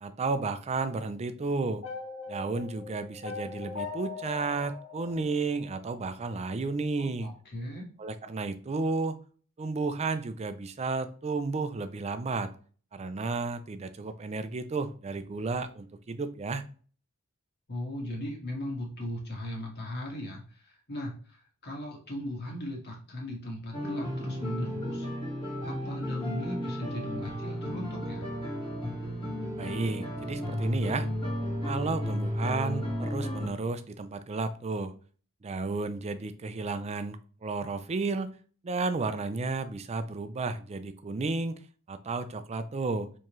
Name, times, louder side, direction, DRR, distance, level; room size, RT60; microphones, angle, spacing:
voice 1, 0.0-1.8 2.3-7.3 8.0-9.2 9.6-12.5 12.9-16.6 29.6-31.1 31.6-34.9 35.4-38.3 38.6-41.6 41.9-43.1, right 3 dB, 30° right, 11 dB, 0.4 m, -32 dB
sound 1, 1.8-6.0, left 4 dB, 80° left, 1.3 m, -41 dB
voice 2, 6.9-7.9 17.7-25.1 25.6-28.3, left 1 dB, 50° left, -1 dB, 1.7 m, -38 dB
sound 2, 23.7-33.5, equal, 20° left, 1.4 m, -33 dB
4.5 x 3.6 x 3.1 m, 0.42 s
head